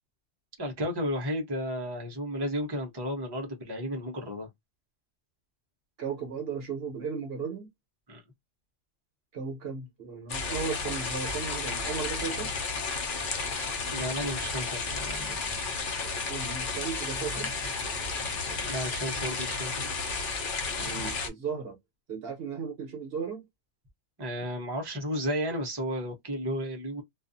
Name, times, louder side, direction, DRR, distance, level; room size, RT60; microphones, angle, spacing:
voice 1, 0.6-4.5 8.1-8.2 13.9-15.4 18.5-19.9 24.2-27.0, equal, 25° right, 0.8 m, -33 dB
voice 2, 6.0-7.7 9.3-12.5 16.3-17.5 20.8-21.8 22.1-23.4, right 6 dB, 60° right, 1.0 m, -35 dB
sound 1, 10.3-21.3, left 4 dB, 50° left, 0.8 m, -32 dB
2.4 x 2.4 x 2.6 m
omnidirectional pair, 1.2 m